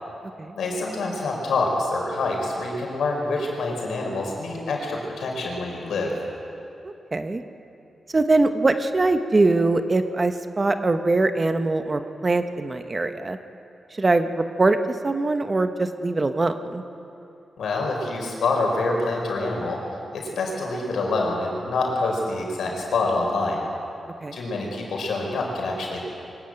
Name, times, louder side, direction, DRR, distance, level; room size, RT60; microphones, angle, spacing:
voice 1, 0.5-6.1 17.6-19.8 20.1-23.6 24.3-26.0, left 3 dB, 90° left, 0 dB, 5.0 m, -26 dB
voice 2, 7.1-7.4 8.1-13.4 14.0-14.8 15.0-16.8 24.2-24.4, right 2 dB, 25° right, 8 dB, 1.0 m, -22 dB
23.5 x 14.5 x 9.0 m, 2.7 s
wide cardioid pair, 125°, 0 cm